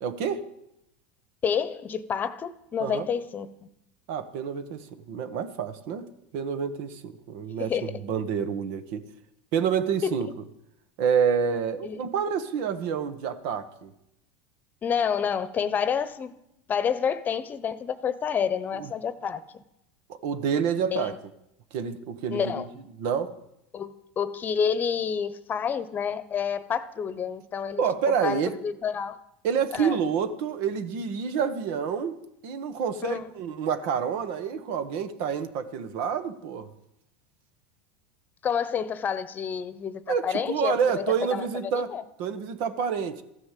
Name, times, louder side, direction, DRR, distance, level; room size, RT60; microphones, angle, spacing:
voice 1, 0.0-0.4 2.8-3.1 4.1-6.1 6.3-9.0 9.5-10.3 11.0-13.9 18.8-18.9 20.1-21.1 21.7-22.6 23.0-23.3 27.8-28.5 29.4-32.2 32.4-36.7 40.1-41.9 42.2-43.2, right 7 dB, 65° right, 11 dB, 1.4 m, -28 dB
voice 2, 1.4-3.5 7.7-7.9 10.0-10.3 11.8-12.0 14.8-16.3 16.7-19.4 20.9-21.2 22.3-22.7 23.7-27.8 28.2-29.2 29.7-30.0 33.0-33.3 38.4-40.8 41.3-42.0, left 7 dB, 30° left, 14 dB, 1.0 m, -29 dB
14.5 x 9.7 x 7.6 m, 0.83 s
hypercardioid pair, 105°, 6 cm